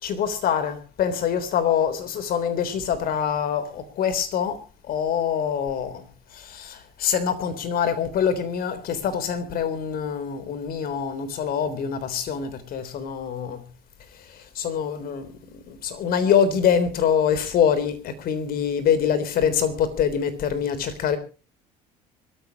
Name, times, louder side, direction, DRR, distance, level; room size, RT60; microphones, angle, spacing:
voice 1, 0.0-6.1 6.3-13.6 14.2-21.2, left 8 dB, 50° left, 3.7 m, -25 dB
25.0 x 14.0 x 3.0 m
hypercardioid pair, 65°, 19 cm